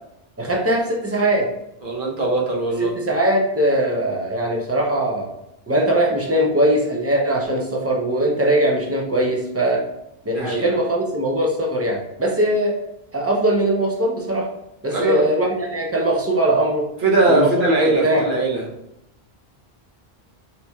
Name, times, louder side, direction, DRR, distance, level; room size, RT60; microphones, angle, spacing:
voice 1, 0.4-1.5 2.8-5.3 5.7-9.8 10.2-12.8 13.1-14.5 14.8-16.9 17.3-17.5 17.8-18.2, right 1 dB, 20° right, -1 dB, 0.4 m, -20 dB
voice 2, 1.8-2.9 10.3-10.7 14.9-15.3 17.0-18.7, right 2 dB, 55° right, -2 dB, 0.9 m, -20 dB
4.0 x 2.9 x 2.3 m, 0.84 s
omnidirectional pair, 1.0 m